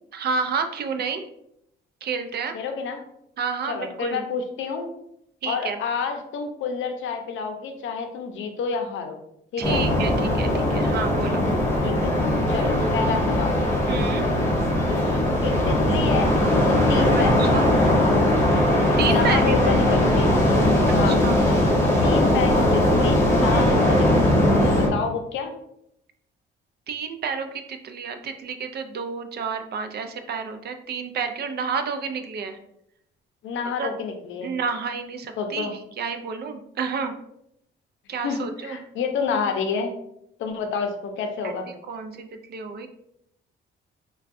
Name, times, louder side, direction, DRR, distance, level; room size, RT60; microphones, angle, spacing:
voice 1, 0.1-1.3 2.0-2.5 3.4-4.2 5.4-5.8 9.6-11.4 13.9-14.3 17.1-17.7 19.0-19.5 20.0-20.1 20.9-21.4 23.5-23.7 26.9-32.6 33.8-33.9 34.4-37.1 38.1-38.8 41.4-41.5 41.9-42.9, right 5 dB, 55° right, 7 dB, 0.5 m, -30 dB
voice 2, 2.5-3.0 3.6-4.9 5.5-9.2 9.5-9.8 11.8-12.1 12.5-13.5 15.4-16.4 16.7-17.8 19.1-20.4 20.9-21.2 22.0-24.4 24.8-25.5 33.4-34.5 35.4-35.7 38.2-39.9 40.4-41.7, left 5 dB, 75° left, 5 dB, 0.6 m, -29 dB
sound 1, 9.6-24.9, left 1 dB, 15° left, 1.2 m, -20 dB
4.4 x 2.2 x 2.5 m, 0.77 s
cardioid pair, 90°, 20 cm